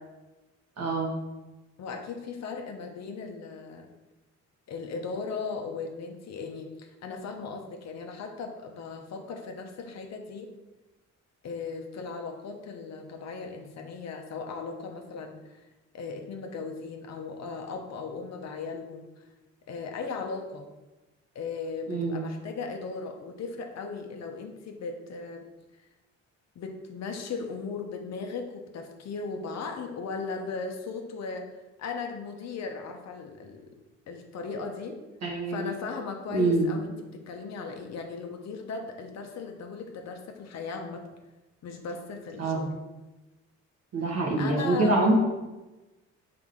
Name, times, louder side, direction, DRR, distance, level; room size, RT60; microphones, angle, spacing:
voice 1, 0.8-1.1 21.9-22.3 35.2-35.7 36.3-36.7 42.4-42.7 43.9-45.1, right 2 dB, 60° right, -1 dB, 1.7 m, -25 dB
voice 2, 1.8-3.9 4.7-10.5 11.4-15.6 15.9-19.2 19.7-20.7 21.3-25.5 26.5-33.7 34.1-35.0 35.5-41.0 41.6-42.7 44.4-45.0, left 4 dB, 65° left, 3 dB, 1.0 m, -37 dB
6.2 x 4.8 x 3.8 m, 1.1 s
cardioid pair, 105°, 29 cm